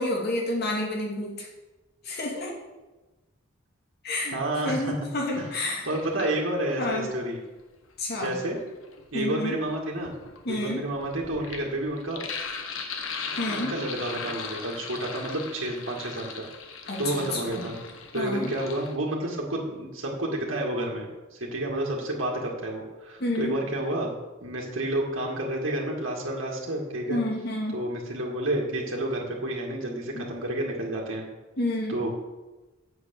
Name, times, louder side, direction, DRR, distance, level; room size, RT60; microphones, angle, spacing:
voice 1, 0.0-1.5 2.0-2.5 4.0-4.4 4.6-5.9 6.8-7.1 8.0-8.3 9.1-9.6 10.4-10.8 13.4-13.7 16.9-17.6 18.1-18.5 23.2-23.6 27.1-27.7 30.1-30.2 31.6-32.0, left 1 dB, 50° left, -1 dB, 2.7 m, -29 dB
voice 2, 4.3-5.0 5.4-7.4 8.1-8.6 9.1-10.1 10.5-12.2 13.5-16.5 17.0-17.8 18.1-24.1 24.4-27.2 27.7-31.3 31.9-32.1, right 1 dB, 75° right, -2 dB, 2.1 m, -30 dB
Sink (filling or washing), 5.3-6.8 8.0-18.9, left 5 dB, 80° left, 1.3 m, -39 dB
8.1 x 7.7 x 7.1 m, 1.1 s
head